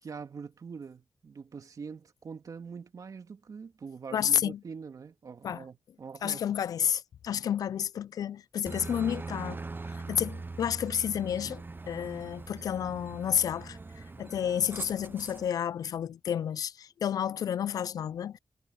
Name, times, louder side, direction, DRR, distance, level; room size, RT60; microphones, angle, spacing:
voice 1, 0.0-6.4, right 5 dB, 70° right, 2.4 m, -44 dB
voice 2, 4.1-4.6 5.4-5.6 6.2-18.4, left 9 dB, 90° left, 0.4 m, -31 dB
Aircraft, 8.7-15.5, right 3 dB, 35° right, 0.8 m, -41 dB
cardioid pair, 50°, 6 cm